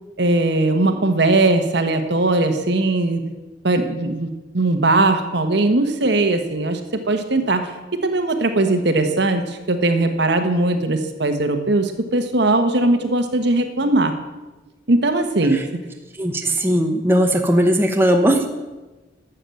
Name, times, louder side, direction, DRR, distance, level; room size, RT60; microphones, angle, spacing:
voice 1, 0.2-3.2 3.6-4.3 4.5-7.7 8.0-14.1 14.9-15.8, right 2 dB, 60° right, 7 dB, 1.2 m, -19 dB
voice 2, 16.2-18.5, equal, 10° right, 3 dB, 0.9 m, -18 dB
12.0 x 7.0 x 7.8 m, 1.2 s
head